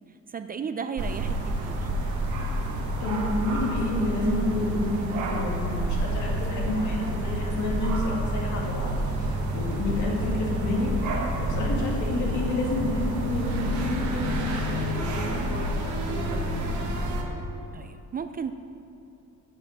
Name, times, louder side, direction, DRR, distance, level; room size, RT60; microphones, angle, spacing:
voice 1, 0.3-1.9 17.7-18.5, right 6 dB, 30° right, 9 dB, 0.4 m, -34 dB
sound 1, 1.0-17.2, right 1 dB, 75° right, 1.2 m, -29 dB
voice 2, 3.0-10.9 11.4-16.5, left 2 dB, 70° left, -2 dB, 2.0 m, -30 dB
sound 2, 5.7-15.7, left 2 dB, 45° left, 1.1 m, -41 dB
sound 3, 8.5-13.8, equal, 15° right, 1.2 m, -43 dB
7.0 x 6.0 x 6.5 m, 2.8 s
cardioid pair, 90°, 30 cm